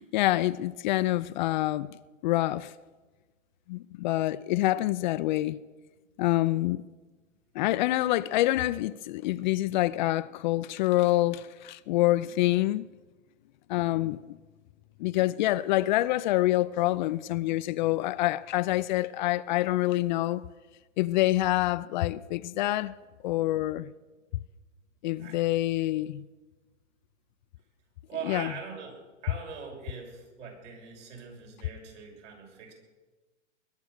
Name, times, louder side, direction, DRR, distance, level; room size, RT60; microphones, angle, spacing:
voice 1, 0.0-1.9 2.2-2.7 3.7-5.6 6.2-6.8 7.5-12.9 13.7-14.4 15.0-20.4 21.0-22.9 23.2-23.9 25.0-26.3 28.2-28.5, left 16 dB, 40° left, 0.4 m, -26 dB
voice 2, 28.1-29.0 29.2-32.7, right 6 dB, 70° right, 6.1 m, -41 dB
21.5 x 10.5 x 6.5 m
hypercardioid pair, 125°, 38 cm